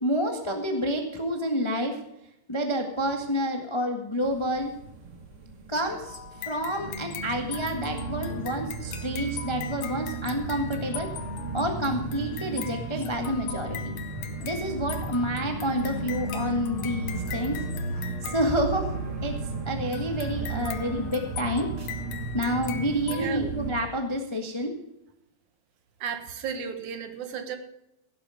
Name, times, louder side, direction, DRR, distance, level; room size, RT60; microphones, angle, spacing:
voice 1, 0.0-2.0 2.5-4.7 5.7-6.2 6.5-11.1 11.5-13.9 14.4-17.5 18.2-18.9 19.2-19.3 19.6-21.7 22.3-24.7, equal, 35° left, 3 dB, 0.4 m, -29 dB
sound 1, 4.2-23.7, right 3 dB, 45° right, 2.6 m, -35 dB
sound 2, 6.1-19.2 19.9-23.3, left 9 dB, 75° left, 2.6 m, -41 dB
voice 2, 23.1-23.5 26.0-27.6, right 7 dB, 65° right, 8 dB, 2.6 m, -34 dB
17.0 x 8.9 x 5.1 m, 0.84 s
omnidirectional pair, 3.9 m